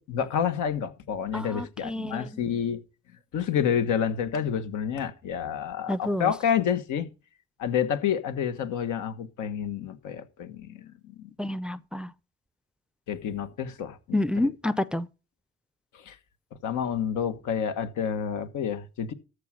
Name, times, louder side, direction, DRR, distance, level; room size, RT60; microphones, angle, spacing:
voice 1, 0.0-2.8 3.3-7.1 7.6-10.8 11.2-11.3 13.1-14.2 16.0-16.1 16.6-19.1, left 8 dB, 80° left, 1.4 m, -29 dB
voice 2, 1.3-2.6 5.9-6.3 11.4-12.1 14.1-15.1, left 1 dB, 5° right, 0.5 m, -29 dB
13.5 x 4.9 x 6.3 m
cardioid pair, 90°, 30 cm